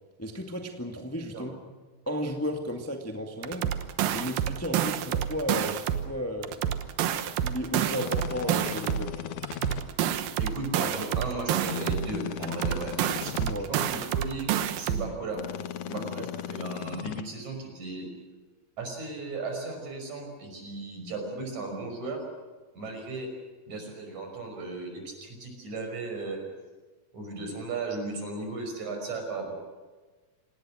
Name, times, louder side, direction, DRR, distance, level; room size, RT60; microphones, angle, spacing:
voice 1, 0.2-1.5 2.0-3.7 4.1-6.6 7.4-9.3 13.4-13.7 15.9-16.3, equal, 10° left, 3 dB, 1.0 m, -34 dB
sound 1, 3.4-6.1 6.4-9.1 9.4-12.1 12.4-15.1, right 10 dB, 75° right, 2.8 m, -29 dB
sound 2, 8.0-9.8 11.6-13.5 15.3-17.2, left 11 dB, 85° left, 1.3 m, -37 dB
voice 2, 10.4-13.4 13.7-14.5 14.8-15.4 15.9-18.1 18.8-22.2 22.7-23.3 23.7-26.4 27.1-29.5, right 3 dB, 50° right, 3 dB, 6.9 m, -36 dB
27.0 x 19.5 x 6.4 m, 1.3 s
omnidirectional pair, 4.2 m